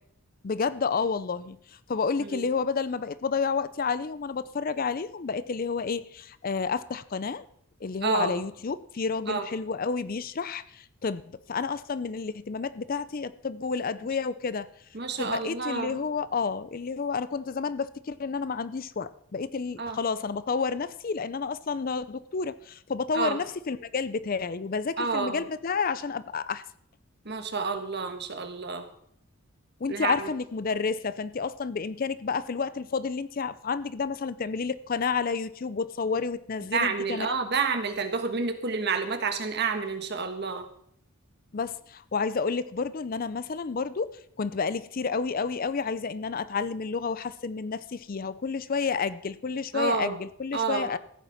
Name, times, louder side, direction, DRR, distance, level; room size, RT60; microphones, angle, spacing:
voice 1, 0.4-1.6 1.9-7.4 7.8-11.2 11.5-14.7 15.2-26.6 29.8-37.4 41.5-51.0, left 5 dB, 40° left, 0.5 m, -30 dB
voice 2, 8.0-8.4 9.3-9.4 14.9-16.0 19.8-20.0 23.1-23.4 25.0-25.4 27.2-28.9 29.9-30.3 36.7-40.7 49.7-50.2 50.5-50.9, right 5 dB, 50° right, 1.5 m, -29 dB
14.5 x 8.3 x 5.9 m
head